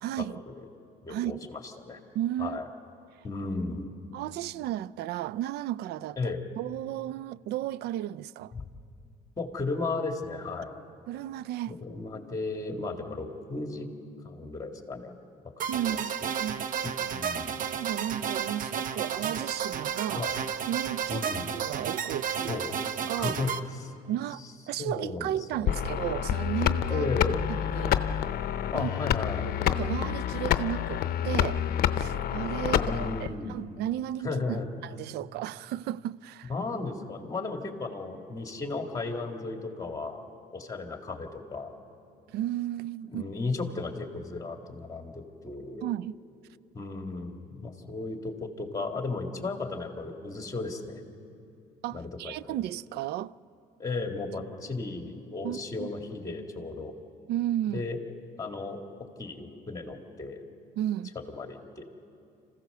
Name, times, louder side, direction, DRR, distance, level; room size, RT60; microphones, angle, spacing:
voice 1, 0.0-0.4 1.1-1.4 2.1-2.6 4.1-8.5 11.1-11.8 15.7-16.1 16.4-16.6 17.8-20.3 20.7-21.3 21.5-22.6 23.1-23.4 24.1-27.1 27.5-28.0 28.7-28.9 29.4-31.7 31.9-36.5 42.3-43.2 45.8-46.2 51.8-53.3 55.4-55.9 57.3-57.9 60.8-61.2, right 12 dB, 75° right, 0.4 m, -34 dB
voice 2, 1.1-2.0 2.4-2.6 3.2-3.9 6.2-6.4 8.5-8.6 9.4-10.8 11.7-13.9 14.2-15.1 15.8-16.0 16.8-17.6 20.2-20.3 21.1-21.4 22.5-22.8 23.2-23.5 23.8-23.9 24.8-25.8 26.9-27.4 28.7-29.5 32.7-33.5 34.2-34.7 36.5-40.2 40.5-41.7 43.0-45.9 46.7-51.0 51.9-52.4 53.8-56.9 57.7-58.0 58.4-58.8 59.2-60.4 61.3-61.8, left 3 dB, 20° left, 2.2 m, -35 dB
sound 1, 15.6-23.6, right 8 dB, 55° right, 0.9 m, -32 dB
sound 2, 25.7-33.3, left 10 dB, 65° left, 0.7 m, -28 dB
26.5 x 15.5 x 6.8 m
cardioid pair, 110°, 17 cm